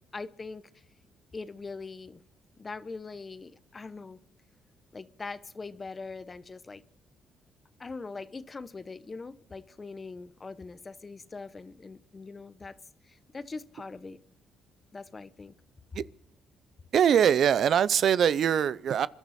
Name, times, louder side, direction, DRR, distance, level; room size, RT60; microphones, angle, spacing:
voice 1, 0.1-0.6 1.3-2.2 2.6-4.2 4.9-6.8 7.8-12.8 13.0-14.2 14.9-15.5, left 4 dB, 30° left, 0.9 m, -42 dB
voice 2, 16.9-19.1, right 8 dB, 65° right, 0.5 m, -22 dB
27.5 x 11.5 x 4.2 m
cardioid pair, 90°, 0 cm